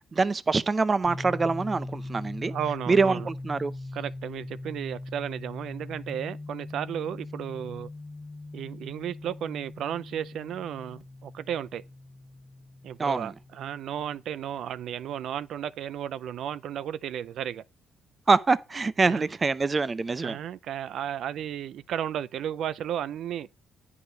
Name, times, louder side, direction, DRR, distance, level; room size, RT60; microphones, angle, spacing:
voice 1, 0.1-2.5 2.9-3.7 13.0-13.3 18.3-20.4, right 4 dB, 30° right, 0.7 m, -25 dB
sound 1, 1.0-14.7, left 2 dB, 15° left, 1.7 m, -41 dB
voice 2, 2.5-3.3 3.9-7.9 8.5-11.8 12.8-17.6 19.0-19.2 20.2-23.5, right 10 dB, 75° right, 0.5 m, -34 dB
9.8 x 4.8 x 5.2 m
cardioid pair, 90°, 0 cm